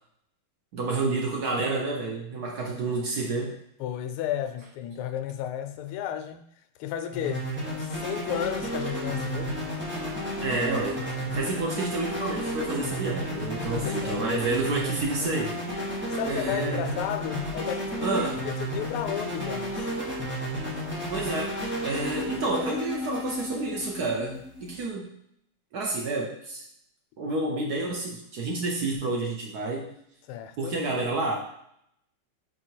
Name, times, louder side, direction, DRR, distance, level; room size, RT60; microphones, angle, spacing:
voice 1, 0.7-3.6 10.4-11.0 11.3-15.6 16.3-16.9 18.0-18.4 21.1-21.6 21.8-25.1 25.7-26.6 27.2-29.9 30.6-31.4, right 3 dB, 60° right, 0 dB, 1.1 m, -29 dB
voice 2, 3.8-6.5 6.8-9.5 13.6-14.3 15.8-19.9 30.3-30.8, left 10 dB, 90° left, 8 dB, 1.5 m, -33 dB
sound 1, 7.1-24.9, equal, 5° right, 1.0 m, -32 dB
4.7 x 4.5 x 4.5 m, 0.73 s
omnidirectional pair, 2.3 m